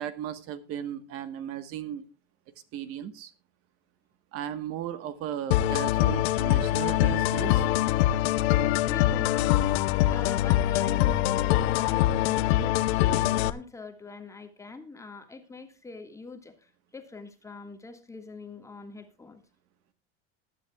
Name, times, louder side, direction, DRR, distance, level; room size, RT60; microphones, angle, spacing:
voice 1, 0.0-2.0 2.7-3.3 4.3-7.7, right 10 dB, 45° right, 1.3 m, -36 dB
sound 1, 5.5-13.5, left 13 dB, 85° left, 0.9 m, -24 dB
voice 2, 8.8-9.8 10.1-12.8 13.2-19.4, left 3 dB, 10° left, 1.7 m, -44 dB
20.5 x 11.0 x 2.3 m
supercardioid pair, 155°, 31 cm